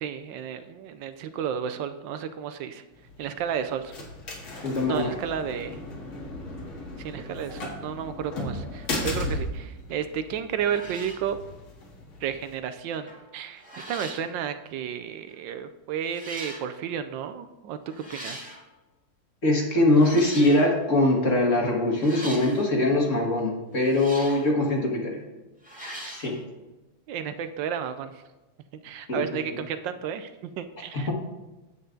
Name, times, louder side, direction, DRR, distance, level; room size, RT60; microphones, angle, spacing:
voice 1, 0.0-2.8 3.2-4.1 4.5-5.8 7.0-11.4 12.2-17.8 18.1-18.5 27.1-28.2 28.8-30.3 30.6-31.1, right 8 dB, 75° right, 11 dB, 1.2 m, -32 dB
sound 1, 2.9-12.5, left 2 dB, 75° left, 2.6 m, -36 dB
voice 2, 4.6-5.1 19.4-25.2 26.1-26.4 29.1-29.2 30.9-31.1, left 1 dB, 40° left, -1 dB, 1.8 m, -22 dB
sound 2, 10.1-10.3 10.6-11.3 12.9-13.2 13.6-14.3 15.3-15.4 16.1-16.7 17.9-18.6 19.9-20.7 22.0-22.7 23.8-24.5 25.6-26.3, equal, 5° right, 1.5 m, -41 dB
9.3 x 7.8 x 3.8 m, 1.1 s
omnidirectional pair, 2.3 m